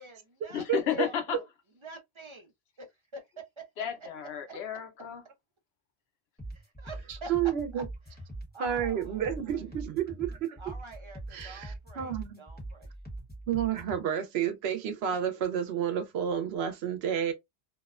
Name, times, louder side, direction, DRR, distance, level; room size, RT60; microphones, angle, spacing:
voice 1, 0.0-1.4 1.8-2.5 2.8-2.9 3.1-3.7 6.5-7.3 7.7-7.8 8.5-9.6 10.6-12.9 15.3-15.4, right 2 dB, 40° right, 0.5 m, -47 dB
voice 2, 0.5-1.4 3.8-5.2, left 9 dB, 90° left, 0.9 m, -32 dB
sound 1, 6.4-14.0, right 1 dB, 10° left, 1.0 m, -43 dB
voice 3, 7.1-7.8 8.6-10.6 11.3-12.4 13.5-17.3, right 9 dB, 85° right, 0.9 m, -30 dB
2.6 x 2.1 x 2.3 m
omnidirectional pair, 1.0 m